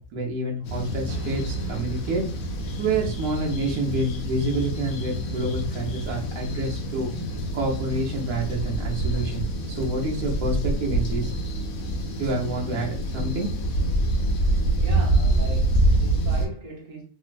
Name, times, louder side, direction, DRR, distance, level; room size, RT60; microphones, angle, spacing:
voice 1, 0.0-2.2 2.8-7.1 7.5-11.3 12.2-13.5, right 2 dB, 75° right, 1.1 m, -28 dB
sound 1, 0.6-16.5, right 1 dB, 75° left, 1.0 m, -26 dB
sound 2, 1.1-5.5, right 3 dB, 20° left, 0.9 m, -40 dB
voice 2, 14.8-17.0, right 3 dB, 35° right, 0.7 m, -38 dB
3.0 x 2.1 x 2.4 m
omnidirectional pair, 1.6 m